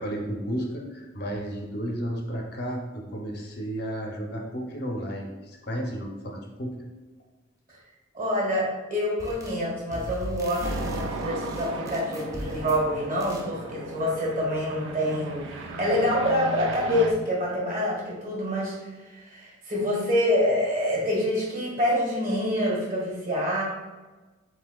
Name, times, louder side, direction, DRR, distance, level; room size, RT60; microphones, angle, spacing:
voice 1, 0.0-6.7, equal, 50° left, 0 dB, 0.8 m, -33 dB
voice 2, 8.1-23.6, equal, 45° right, -4 dB, 1.4 m, -26 dB
sound 1, 9.2-9.6 9.9-12.9 13.2-13.5, equal, 15° right, 0.5 m, -37 dB
sound 2, 10.6-17.1, right 2 dB, 70° right, 0.5 m, -36 dB
7.2 x 2.8 x 2.3 m, 1.2 s
head